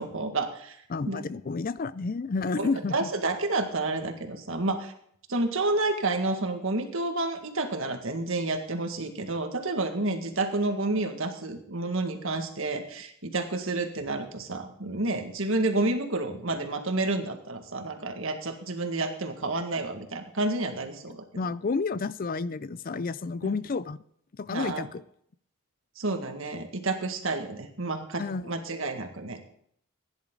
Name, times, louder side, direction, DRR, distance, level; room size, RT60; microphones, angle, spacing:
voice 1, 0.0-1.2 2.6-4.9 5.3-21.2 24.5-24.9 26.0-29.5, right 2 dB, 60° right, 1.9 m, -30 dB
voice 2, 0.9-3.1 21.4-24.0 24.4-25.0 28.2-28.5, left 4 dB, 40° left, 0.4 m, -30 dB
16.5 x 10.5 x 3.9 m
head